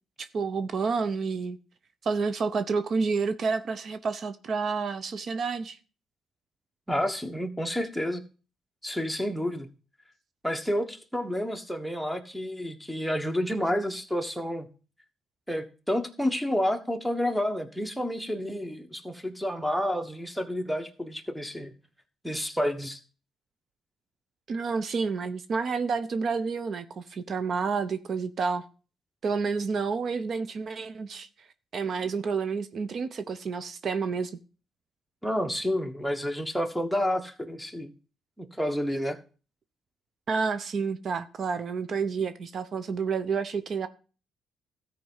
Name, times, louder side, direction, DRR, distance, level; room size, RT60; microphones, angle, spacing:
voice 1, 0.2-1.6 2.0-5.8 24.5-28.7 29.2-31.3 31.7-34.3 40.3-43.9, right 5 dB, 55° right, 0.7 m, -29 dB
voice 2, 6.9-8.2 8.8-9.7 10.4-14.7 15.5-21.7 22.2-23.0 35.2-37.9 38.4-39.2, equal, ahead, 1.3 m, -30 dB
13.5 x 4.5 x 5.5 m
cardioid pair, 90°, 0 cm